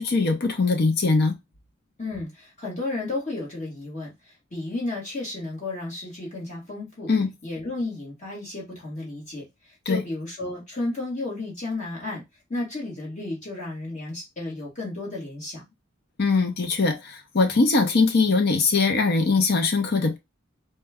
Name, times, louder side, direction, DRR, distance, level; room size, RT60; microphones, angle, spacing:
voice 1, 0.0-1.4 7.1-7.3 9.9-10.0 16.2-20.2, left 4 dB, 55° left, 0.7 m, -21 dB
voice 2, 2.0-7.1 7.4-12.2 12.5-15.6, left 2 dB, 40° left, 1.6 m, -33 dB
4.3 x 2.3 x 3.4 m
head